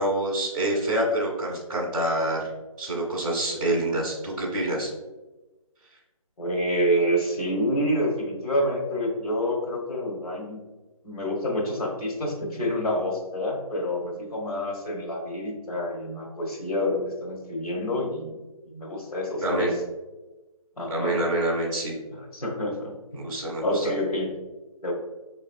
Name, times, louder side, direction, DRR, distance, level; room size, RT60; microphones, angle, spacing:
voice 1, 0.0-2.4 2.8-4.9 19.4-19.7 20.9-21.9 23.2-23.9, right 1 dB, 5° right, -13 dB, 0.4 m, -26 dB
voice 2, 6.4-10.6 11.0-18.4 18.6-19.7 20.8-21.2 22.1-23.2 23.6-24.4 24.8-24.9, equal, 85° left, -2 dB, 1.4 m, -28 dB
4.6 x 3.2 x 2.6 m, 1.1 s
figure-of-eight pair, 155°, 18 cm